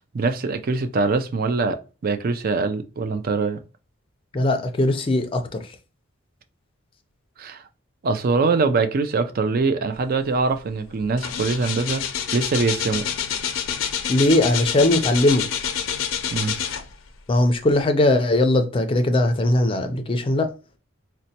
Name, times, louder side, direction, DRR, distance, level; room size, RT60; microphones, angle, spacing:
voice 1, 0.1-3.6 7.4-7.6 8.0-12.0 12.3-13.0 16.3-16.6, right 4 dB, 45° right, 0.4 m, -23 dB
voice 2, 4.3-5.7 14.1-15.5 17.3-20.5, left 1 dB, 25° left, 0.4 m, -19 dB
sound 1, 10.4-10.6 10.9-17.2 17.7-17.8, left 8 dB, 85° left, 0.5 m, -27 dB
4.1 x 2.2 x 2.7 m
head